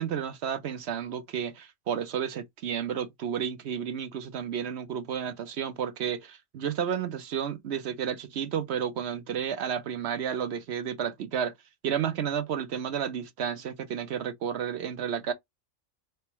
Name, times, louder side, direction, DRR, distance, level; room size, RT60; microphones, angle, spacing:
voice 1, 0.0-11.5 11.8-15.3, right 8 dB, 60° right, 0.9 m, -31 dB
4.3 x 3.4 x 2.9 m
omnidirectional pair, 1.4 m